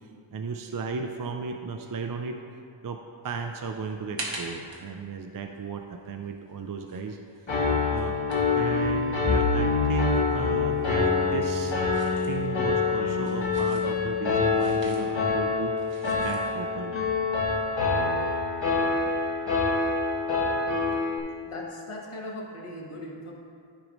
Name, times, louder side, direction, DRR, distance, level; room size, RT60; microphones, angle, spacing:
voice 1, 0.3-2.4 2.8-3.0 3.2-7.5 7.9-8.2 8.5-11.8 12.2-15.8 16.2-17.0 21.3-21.4, right 5 dB, 45° right, 5 dB, 0.5 m, -35 dB
sound 1, 3.5-9.6 9.9-16.6, right 2 dB, 65° right, 1.3 m, -45 dB
Piano, 7.5-21.2, left 4 dB, 65° left, 1.4 m, -26 dB
Bowed string instrument, 9.3-13.6, equal, 15° left, 0.9 m, -34 dB
voice 2, 21.4-23.3, left 1 dB, 90° left, -2 dB, 1.4 m, -39 dB
13.0 x 5.1 x 3.1 m, 2.2 s
wide cardioid pair, 90°, 49 cm